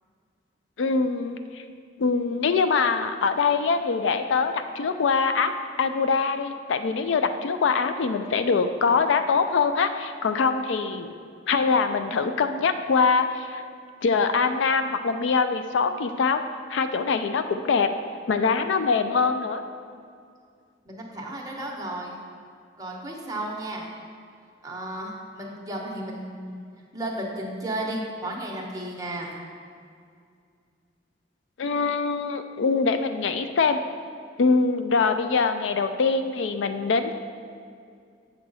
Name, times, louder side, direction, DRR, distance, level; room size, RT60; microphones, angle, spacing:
voice 1, 0.8-1.6 2.0-5.5 5.8-11.1 11.5-13.6 14.0-16.4 16.7-17.9 18.3-19.6 31.6-33.8 34.4-37.1, left 5 dB, 75° left, 9 dB, 0.4 m, -23 dB
voice 2, 20.8-22.1 22.8-23.9 24.6-26.6 26.9-29.4, right 1 dB, 20° right, -2 dB, 1.0 m, -33 dB
7.7 x 6.2 x 4.0 m, 2.3 s
head